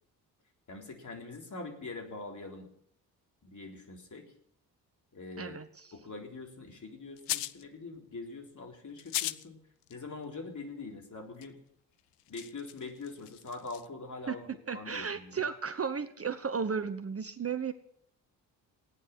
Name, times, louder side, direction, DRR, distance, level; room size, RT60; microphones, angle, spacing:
voice 1, 0.7-2.7 3.4-4.3 5.1-5.6 5.9-9.6 9.9-11.6 12.3-15.4, left 3 dB, 40° left, 2 dB, 3.8 m, -43 dB
voice 2, 5.4-5.9 14.3-14.4 14.7-17.7, right 6 dB, 30° right, 11 dB, 1.0 m, -34 dB
sound 1, 7.2-7.6 9.0-9.5 9.8-9.9 11.4-11.5 12.0-13.8, left 15 dB, 65° left, 0.7 m, -37 dB
17.5 x 9.9 x 6.1 m, 0.67 s
hypercardioid pair, 40°, 45 cm